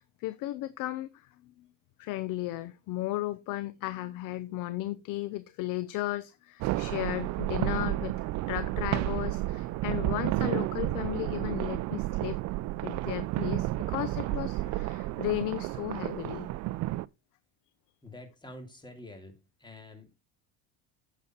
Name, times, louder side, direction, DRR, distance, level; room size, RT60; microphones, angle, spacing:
voice 1, 0.0-1.7 2.0-12.4 12.8-16.5, left 16 dB, 55° left, 0.8 m, -35 dB
sound 1, 6.6-17.1, right 17 dB, 45° right, 0.5 m, -31 dB
voice 2, 18.0-20.2, left 1 dB, 10° left, 2.9 m, -47 dB
9.0 x 7.1 x 4.5 m
supercardioid pair, 120°, 39 cm